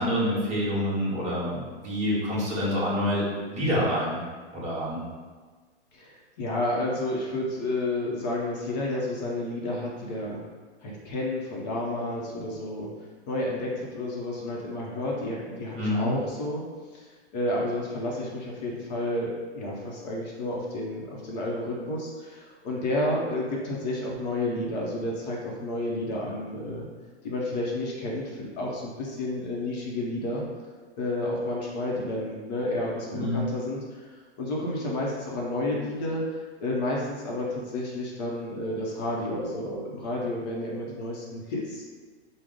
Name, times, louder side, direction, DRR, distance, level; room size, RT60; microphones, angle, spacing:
voice 1, 0.0-4.2 4.5-5.0 15.8-16.1 33.1-33.4, equal, 20° right, -7 dB, 0.9 m, -27 dB
voice 2, 5.9-10.4 10.8-12.9 13.3-16.6 16.9-26.9 27.2-30.4 31.0-41.9, left 1 dB, 40° left, -3 dB, 0.6 m, -31 dB
3.4 x 2.0 x 3.6 m, 1.4 s
hypercardioid pair, 140°, 34 cm